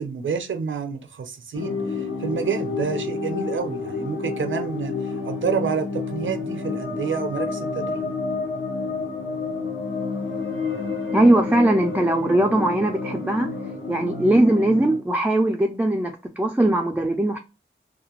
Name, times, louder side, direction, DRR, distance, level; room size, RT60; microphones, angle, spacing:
voice 1, 0.0-4.9 5.2-8.1, right 6 dB, 70° right, 0.5 m, -28 dB
sound 1, 1.5-15.0, left 4 dB, 70° left, 0.9 m, -29 dB
voice 2, 11.1-13.5 13.9-17.4, right 1 dB, 10° right, 0.3 m, -20 dB
2.4 x 2.1 x 2.9 m
wide cardioid pair, 70°, 21 cm